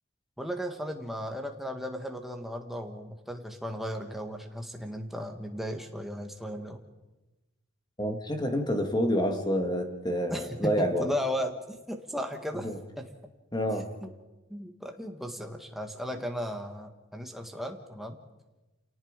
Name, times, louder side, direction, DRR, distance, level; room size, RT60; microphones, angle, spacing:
voice 1, 0.4-6.8 10.3-12.7 13.0-13.1 14.0-14.1 14.5-18.1, equal, ahead, 3 dB, 1.6 m, -36 dB
voice 2, 8.0-11.1 12.6-12.8 13.5-14.0, equal, 20° left, 5 dB, 2.0 m, -28 dB
29.0 x 18.0 x 5.2 m, 1.1 s
head